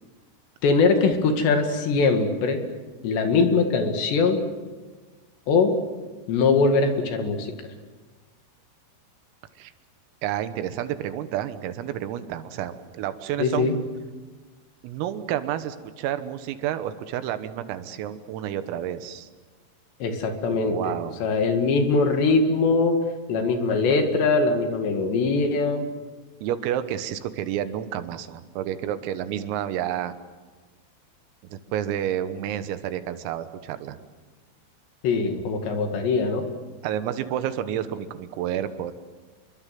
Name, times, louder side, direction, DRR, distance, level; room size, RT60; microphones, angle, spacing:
voice 1, 0.6-2.6 3.0-4.4 5.5-5.7 6.3-7.5 13.4-13.8 20.0-22.9 23.3-25.9 35.0-36.5, left 4 dB, 60° left, 5 dB, 4.0 m, -22 dB
voice 2, 10.2-13.7 14.8-19.3 20.4-21.2 26.4-30.2 31.5-34.0 36.8-38.9, right 11 dB, 85° right, 11 dB, 3.9 m, -30 dB
29.0 x 22.5 x 7.7 m, 1.3 s
omnidirectional pair, 5.9 m